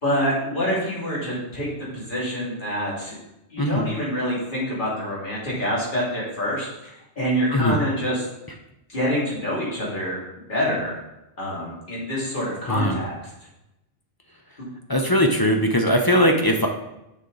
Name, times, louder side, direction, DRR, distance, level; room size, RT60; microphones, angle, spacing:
voice 1, 0.0-3.2 3.5-8.2 8.9-11.0 11.4-13.1, equal, 45° left, -6 dB, 2.7 m, -26 dB
voice 2, 3.6-3.9 7.5-7.8 12.7-13.0 14.9-16.7, equal, 30° left, 3 dB, 0.4 m, -20 dB
6.7 x 6.4 x 3.9 m, 0.90 s
omnidirectional pair, 1.1 m